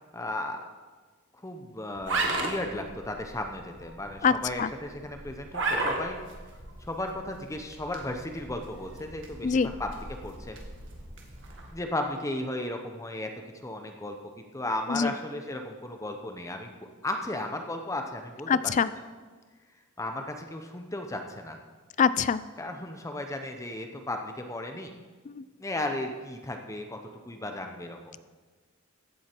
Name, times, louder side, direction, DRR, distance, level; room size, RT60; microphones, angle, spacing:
voice 1, 0.1-0.6 1.3-6.2 6.8-10.6 11.7-16.8 17.0-18.5 20.0-21.6 22.6-24.9 25.6-27.0 27.3-28.1, left 1 dB, 15° left, 4 dB, 0.8 m, -35 dB
sound 1, 2.0-11.7, right 2 dB, 65° right, 1.8 m, -36 dB
voice 2, 4.2-4.7 9.4-9.7 14.9-15.1 18.5-18.9 22.0-22.4 25.3-25.4, left 6 dB, 35° left, 16 dB, 0.3 m, -24 dB
15.0 x 8.0 x 4.5 m, 1.4 s
head